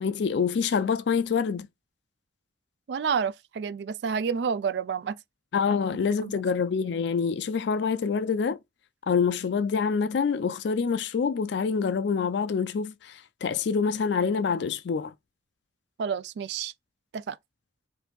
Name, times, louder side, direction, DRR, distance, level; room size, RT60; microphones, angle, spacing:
voice 1, 0.0-1.7 5.5-8.6 9.1-15.1, left 5 dB, 65° left, 0.4 m, -26 dB
voice 2, 2.9-5.2 6.2-6.4 16.0-16.7 17.1-17.4, right 6 dB, 60° right, 0.3 m, -29 dB
4.5 x 2.7 x 2.3 m
head